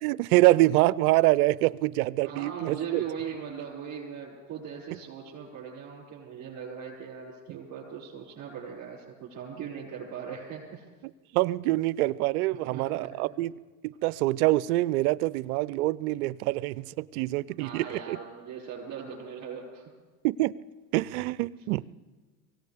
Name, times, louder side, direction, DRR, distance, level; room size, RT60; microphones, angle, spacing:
voice 1, 0.0-3.0 11.3-13.5 14.0-18.2 20.2-20.5 20.9-21.8, right 18 dB, 70° right, 20 dB, 0.6 m, -25 dB
voice 2, 2.2-10.8 12.5-13.3 17.6-19.9, right 7 dB, 40° right, -8 dB, 5.7 m, -39 dB
24.0 x 17.0 x 3.5 m, 1.3 s
supercardioid pair, 105°, 45 cm